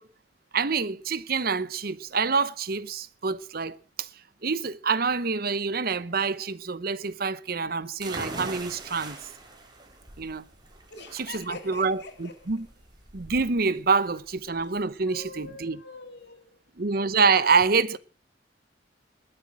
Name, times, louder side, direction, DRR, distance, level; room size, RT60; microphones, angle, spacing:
voice 1, 0.5-4.1 4.4-9.2 10.2-10.4 11.3-12.7 13.1-15.8 16.8-18.0, right 4 dB, 55° right, 0.9 m, -26 dB
sound 1, 8.0-15.5, right 2 dB, 25° right, 3.8 m, -42 dB
voice 2, 10.9-12.6 14.5-14.7 15.0-16.6, left 3 dB, 65° left, 3.1 m, -44 dB
21.0 x 7.9 x 6.2 m
head